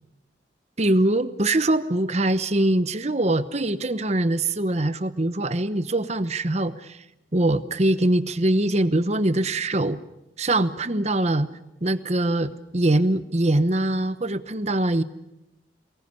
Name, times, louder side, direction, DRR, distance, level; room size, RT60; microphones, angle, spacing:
voice 1, 0.8-7.0 7.3-10.0 10.4-11.5 11.8-15.0, right 1 dB, 35° right, 12 dB, 1.0 m, -23 dB
24.0 x 21.0 x 8.3 m, 0.91 s
head